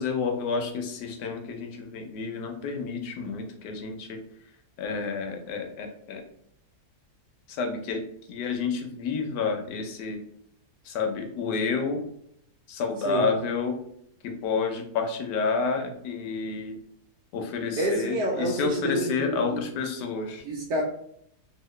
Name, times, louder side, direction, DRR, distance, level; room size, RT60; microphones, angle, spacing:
voice 1, 0.0-4.2 4.8-6.2 7.5-8.0 8.3-10.2 10.8-12.0 12.7-13.8 14.2-16.8 17.3-20.4, left 4 dB, 90° left, 4 dB, 1.3 m, -30 dB
voice 2, 17.8-19.6 20.4-20.8, right 1 dB, 75° right, -4 dB, 1.2 m, -28 dB
2.8 x 2.8 x 3.1 m, 0.71 s
omnidirectional pair, 1.7 m